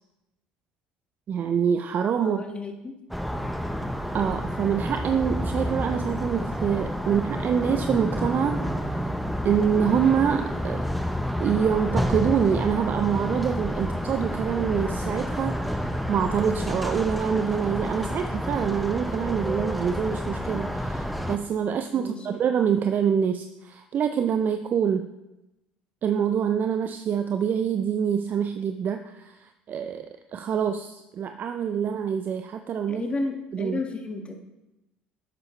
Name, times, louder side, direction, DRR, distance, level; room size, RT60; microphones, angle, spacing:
voice 1, 1.3-2.4 4.1-8.6 9.4-10.8 11.4-25.1 26.0-30.1 30.3-33.0 33.5-33.8, right 7 dB, 45° right, 8 dB, 0.5 m, -26 dB
voice 2, 2.2-2.9 21.9-22.4 32.9-34.4, left 3 dB, 25° left, 3 dB, 1.8 m, -32 dB
sound 1, 3.1-21.4, equal, ahead, 0.9 m, -29 dB
11.0 x 8.1 x 3.3 m, 0.95 s
hypercardioid pair, 65°, 4 cm